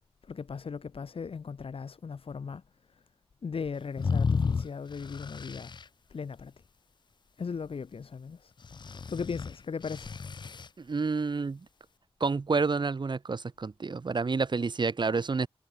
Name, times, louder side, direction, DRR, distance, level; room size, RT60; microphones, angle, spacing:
voice 1, 0.3-2.6 3.4-5.7 6.1-6.5 7.4-8.5 8.8-10.1, left 5 dB, 70° left, 1.7 m, -37 dB
sound 1, 4.0-5.8 8.6-10.7, left 5 dB, 50° left, 0.6 m, -32 dB
voice 2, 10.8-11.7 12.2-15.5, right 4 dB, 50° right, 2.0 m, -29 dB
wide cardioid pair, 100°, 10 cm